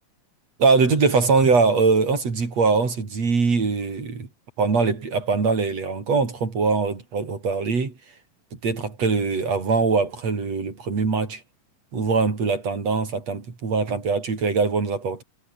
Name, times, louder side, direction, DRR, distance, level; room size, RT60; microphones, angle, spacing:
voice 1, 0.6-4.3 4.6-7.9 8.5-11.4 11.9-15.2, right 4 dB, 50° right, 5.5 m, -22 dB
omnidirectional pair, 3.8 m